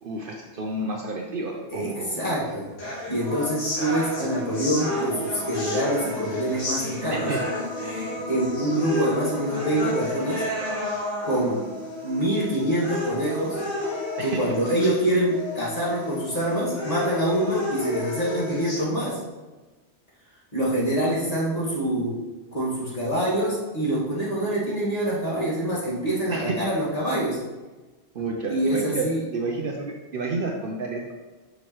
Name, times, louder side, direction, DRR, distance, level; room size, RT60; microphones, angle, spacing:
voice 1, 0.0-2.2 7.1-7.4 14.2-14.9 26.3-26.7 28.1-31.1, right 3 dB, 55° right, 1 dB, 0.7 m, -30 dB
voice 2, 1.7-2.7 3.1-7.3 7.9-10.4 11.2-11.6 12.0-13.6 14.2-19.2 20.5-22.2 22.5-27.4 28.5-29.2, right 1 dB, 35° left, -7 dB, 1.8 m, -25 dB
sound 1, 2.8-18.8, left 1 dB, 80° left, 2.1 m, -31 dB
6.2 x 5.2 x 2.9 m, 1.2 s
omnidirectional pair, 1.2 m